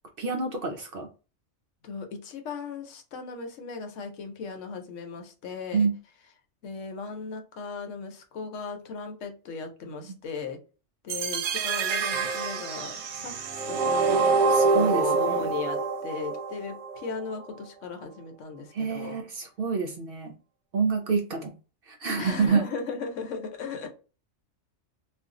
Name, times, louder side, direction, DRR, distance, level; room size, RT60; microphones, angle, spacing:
voice 1, 0.2-1.1 5.7-5.9 14.5-15.5 18.7-20.3 20.7-21.5 21.9-22.6, right 5 dB, 60° right, 4 dB, 0.6 m, -27 dB
voice 2, 1.8-5.9 6.6-10.6 11.0-14.3 14.7-19.2 22.2-23.9, left 5 dB, 75° left, 5 dB, 1.0 m, -37 dB
sound 1, 11.1-17.1, right 4 dB, 90° right, 1.0 m, -26 dB
2.5 x 2.3 x 3.6 m, 0.34 s
omnidirectional pair, 1.3 m